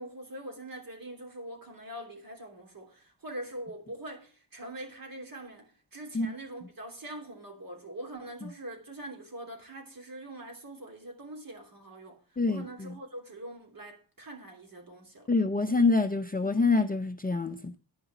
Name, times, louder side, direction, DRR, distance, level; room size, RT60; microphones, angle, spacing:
voice 1, 0.0-12.2 12.4-15.3, right 1 dB, 45° right, 3.1 m, -43 dB
voice 2, 12.4-12.9 15.3-17.7, left 3 dB, 20° left, 0.6 m, -26 dB
10.5 x 5.6 x 6.8 m
cardioid pair, 85°, 46 cm